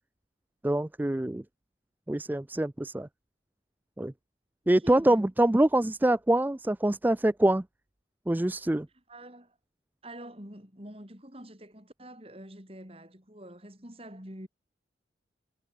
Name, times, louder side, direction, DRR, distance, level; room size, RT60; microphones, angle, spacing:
voice 1, 0.6-1.4 2.1-3.1 4.0-4.1 4.7-7.6 8.3-8.9, right 1 dB, 10° right, 0.3 m, -25 dB
voice 2, 4.6-5.3 9.1-9.6 10.0-14.5, right 1 dB, 30° right, 6.1 m, -46 dB
head